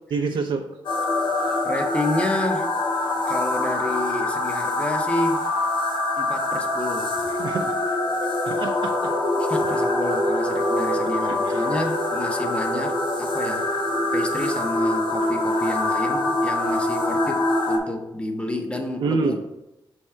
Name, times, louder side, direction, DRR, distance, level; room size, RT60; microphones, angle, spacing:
voice 1, 0.1-0.7 7.3-7.8 8.4-9.4 9.7-9.8 11.3-11.6 19.0-19.4, right 4 dB, 70° right, 3 dB, 0.5 m, -28 dB
sound 1, 0.8-17.8, left 2 dB, 80° left, 1.2 m, -24 dB
voice 2, 1.6-2.7 3.3-5.5 6.2-7.3 9.4-13.7 14.1-19.4, left 1 dB, 15° left, 4 dB, 0.7 m, -29 dB
6.4 x 3.6 x 4.3 m, 0.93 s
wide cardioid pair, 165°, 8 cm